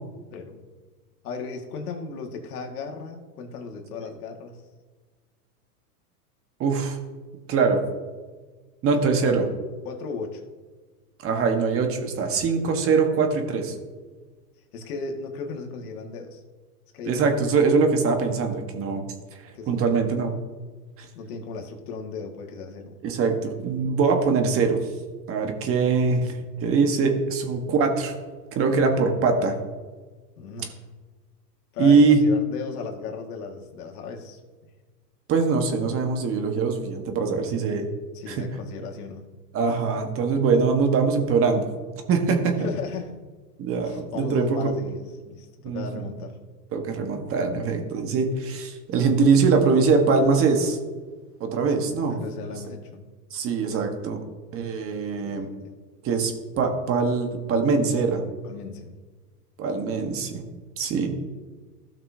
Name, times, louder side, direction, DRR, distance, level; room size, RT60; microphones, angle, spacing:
voice 1, 1.2-4.6 9.0-9.4 9.9-10.4 14.7-16.4 16.9-17.3 19.5-20.1 21.1-23.0 27.4-27.5 30.4-30.8 31.7-34.4 38.1-39.2 42.6-43.1 43.8-46.4 52.1-53.1 55.2-55.8 58.4-58.9, left 4 dB, 65° left, 2 dB, 2.0 m, -36 dB
voice 2, 6.6-7.0 7.5-7.8 8.8-9.4 11.2-13.7 17.0-19.0 19.4-20.3 21.0-21.1 23.0-24.8 25.3-28.1 28.5-29.5 31.8-32.2 35.3-37.9 38.3-38.4 39.5-41.6 42.1-42.6 43.6-44.7 45.6-46.0 46.7-50.8 51.4-52.2 53.3-54.2 54.5-55.5 56.0-58.2 59.6-60.4 60.8-61.1, right 4 dB, 30° right, 4 dB, 1.4 m, -22 dB
16.0 x 6.0 x 2.8 m, 1.4 s
hypercardioid pair, 130°, 48 cm